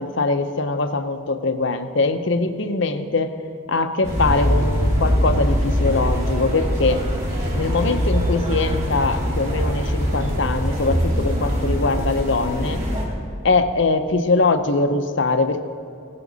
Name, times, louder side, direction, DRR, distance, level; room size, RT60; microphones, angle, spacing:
voice 1, 0.0-3.3 3.7-7.0 7.5-12.8 13.4-15.6, left 3 dB, 55° left, 9 dB, 0.7 m, -22 dB
sound 1, 4.0-13.0, equal, 30° right, 2.9 m, -22 dB
17.0 x 11.0 x 4.0 m, 2.8 s
head